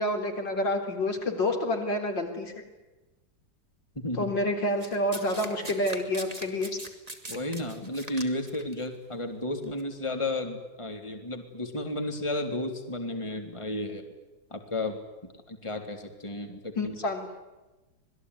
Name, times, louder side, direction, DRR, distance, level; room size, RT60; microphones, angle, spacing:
voice 1, 0.0-2.6 4.2-6.8 16.8-17.3, left 1 dB, 70° left, 5 dB, 4.6 m, -28 dB
voice 2, 3.9-4.3 7.3-14.0 14.5-16.9, left 2 dB, 15° left, 5 dB, 3.4 m, -33 dB
Domestic sounds home sounds, 4.8-8.7 9.6-9.8, right 2 dB, 20° right, 3.2 m, -41 dB
26.5 x 21.0 x 9.8 m, 1.1 s
omnidirectional pair, 2.1 m